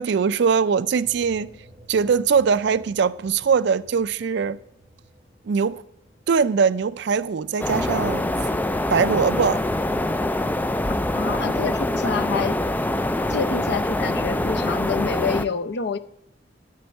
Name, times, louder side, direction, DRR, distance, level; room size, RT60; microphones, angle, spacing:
voice 1, 0.0-1.5 1.9-4.6 5.4-5.8 6.3-8.5 8.9-9.6, right 6 dB, 65° right, 0.4 m, -21 dB
sound 1, 1.0-7.9, equal, 10° right, 3.0 m, -53 dB
sound 2, 7.6-15.5, left 1 dB, 10° left, 0.3 m, -24 dB
voice 2, 11.1-12.7 13.3-16.0, left 5 dB, 60° left, 0.6 m, -27 dB
12.0 x 4.4 x 7.9 m
head